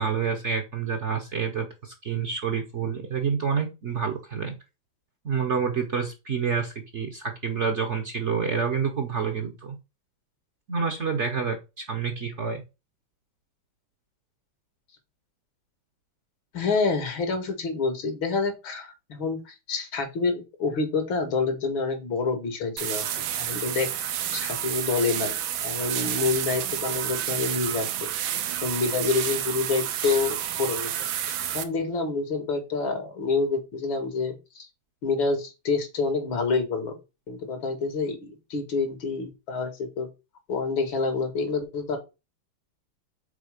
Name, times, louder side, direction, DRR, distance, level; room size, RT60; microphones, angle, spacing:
voice 1, 0.0-4.5 5.2-9.8 10.7-12.6, right 6 dB, 50° right, 4 dB, 0.9 m, -28 dB
voice 2, 16.5-23.9 24.3-25.3 25.6-28.1 28.6-31.0 31.3-34.7 35.0-36.9 37.3-40.1 40.5-42.0, left 4 dB, 80° left, 5 dB, 2.5 m, -27 dB
sound 1, 22.8-31.6, right 10 dB, 85° right, 1.5 m, -30 dB
5.4 x 4.1 x 5.0 m, 0.27 s
omnidirectional pair, 2.1 m